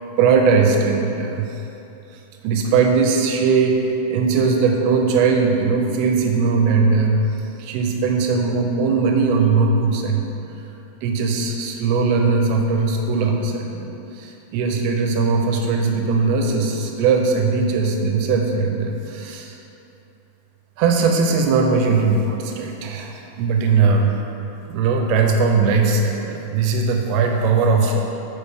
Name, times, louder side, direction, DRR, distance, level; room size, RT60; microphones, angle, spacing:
voice 1, 0.2-1.6 2.4-7.2 7.6-10.3 11.0-19.6 20.8-24.2 24.7-28.0, right 4 dB, 90° right, 2 dB, 2.5 m, -19 dB
8.1 x 4.3 x 3.4 m, 2.9 s
omnidirectional pair, 4.3 m